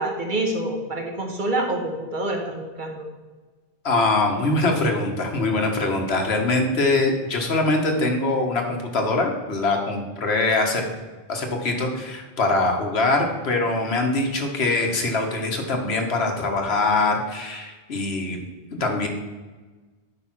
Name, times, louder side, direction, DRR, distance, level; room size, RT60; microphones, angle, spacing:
voice 1, 0.0-3.1, right 2 dB, 45° right, 1 dB, 1.3 m, -27 dB
voice 2, 3.8-10.8 11.3-18.4 18.8-19.1, left 2 dB, 65° left, 3 dB, 1.4 m, -23 dB
9.9 x 3.6 x 5.8 m, 1.3 s
omnidirectional pair, 1.2 m